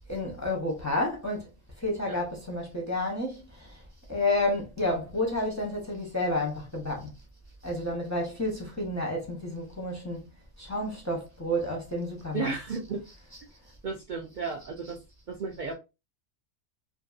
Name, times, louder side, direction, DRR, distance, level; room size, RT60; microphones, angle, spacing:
voice 1, 0.1-1.5 1.8-3.8 4.1-7.1 7.6-10.3 10.6-12.8 13.1-13.4 14.8-14.9, left 1 dB, 20° left, 0.5 m, -31 dB
voice 2, 12.3-13.0 13.8-15.0 15.3-15.7, right 4 dB, 80° right, 0.4 m, -33 dB
2.6 x 2.6 x 2.4 m
omnidirectional pair, 1.4 m